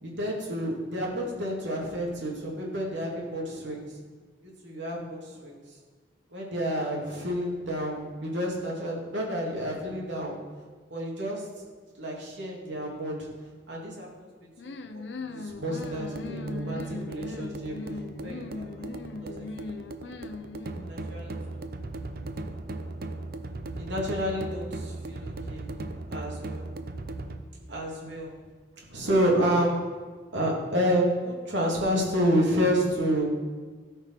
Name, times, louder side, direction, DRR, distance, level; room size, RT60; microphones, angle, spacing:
voice 1, 0.0-3.9 4.4-5.6 6.3-10.3 10.9-11.4 12.0-13.3 13.7-14.3 14.6-17.7 18.2-18.4 18.8-18.9 19.2-19.7 20.9-21.6 23.8-25.6 26.1-26.6 27.7-28.4 28.9-29.8 30.3-33.3, equal, 85° right, -2 dB, 2.7 m, -29 dB
sound 1, 14.6-21.0, left 3 dB, 75° left, 0.7 m, -39 dB
sound 2, 15.6-27.4, right 2 dB, 55° right, 0.7 m, -37 dB
16.5 x 5.5 x 4.6 m, 1.4 s
head